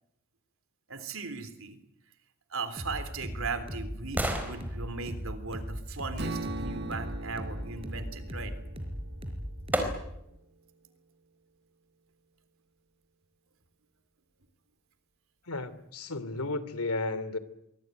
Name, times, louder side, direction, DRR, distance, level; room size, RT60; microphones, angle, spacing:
voice 1, 0.9-1.8 2.5-8.5, right 4 dB, 65° right, 3.5 m, -38 dB
sound 1, 2.8-6.7 8.8-8.9 9.7-10.4 10.9-11.0, right 1 dB, 10° right, 4.2 m, -37 dB
sound 2, 2.8-10.2, equal, 25° right, 4.7 m, -38 dB
Strum, 6.2-10.4, right 2 dB, 50° right, 1.9 m, -41 dB
voice 2, 15.5-17.4, left 2 dB, 90° left, 2.8 m, -33 dB
24.5 x 22.5 x 9.4 m
head